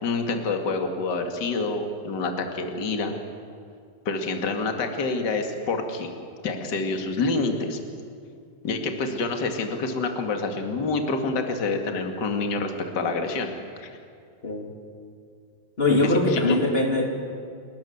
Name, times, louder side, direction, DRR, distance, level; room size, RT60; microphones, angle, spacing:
voice 1, 0.0-3.1 4.1-6.1 6.4-7.8 8.6-13.5 13.8-13.9 16.0-16.6, left 3 dB, 35° left, 4 dB, 2.4 m, -27 dB
voice 2, 15.8-17.3, left 2 dB, 15° left, 2 dB, 2.8 m, -22 dB
29.5 x 19.5 x 7.3 m, 2.4 s
omnidirectional pair, 4.2 m